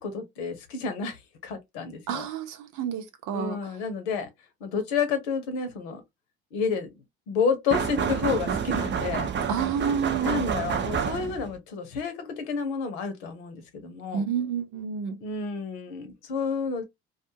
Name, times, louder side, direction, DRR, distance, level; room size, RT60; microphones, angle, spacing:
voice 1, 0.0-2.3 3.3-4.3 4.6-6.0 6.5-6.9 7.3-9.3 10.2-14.3 15.2-16.8, left 5 dB, 80° left, 0.9 m, -30 dB
voice 2, 2.1-3.6 9.5-10.4 14.1-15.2, right 7 dB, 60° right, 0.8 m, -29 dB
sound 1, 7.7-11.6, right 7 dB, 35° right, 0.6 m, -28 dB
2.4 x 2.4 x 2.7 m
hypercardioid pair, 60°, 34 cm